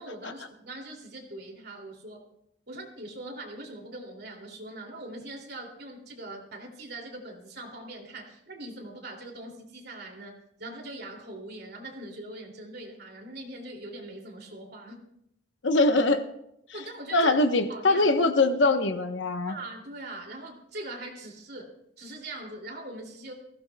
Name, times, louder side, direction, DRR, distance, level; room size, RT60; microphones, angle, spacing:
voice 1, 0.0-2.3 2.7-15.0 16.7-17.4 17.7-18.1 19.5-23.3, right 2 dB, 55° right, 1 dB, 2.7 m, -42 dB
voice 2, 15.6-16.2 17.1-19.5, left 2 dB, 70° left, 7 dB, 1.0 m, -22 dB
21.0 x 15.5 x 2.3 m, 0.78 s
head